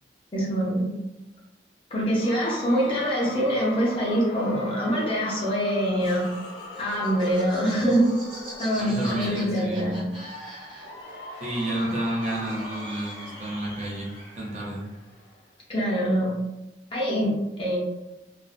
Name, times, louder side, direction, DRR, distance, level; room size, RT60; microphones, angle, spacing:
voice 1, 0.3-0.9 1.9-6.3 6.8-8.1 8.6-10.0 15.7-16.4 16.9-17.8, equal, 30° left, -5 dB, 0.5 m, -24 dB
Cheering / Crowd, 2.2-9.5 10.8-15.5, left 1 dB, 60° left, 0.7 m, -42 dB
Laughter, 6.0-11.2 11.4-13.4, equal, 5° right, 1.0 m, -42 dB
voice 2, 8.8-10.0 11.4-14.8, right 1 dB, 40° right, -4 dB, 0.6 m, -31 dB
2.4 x 2.1 x 2.4 m, 0.99 s
head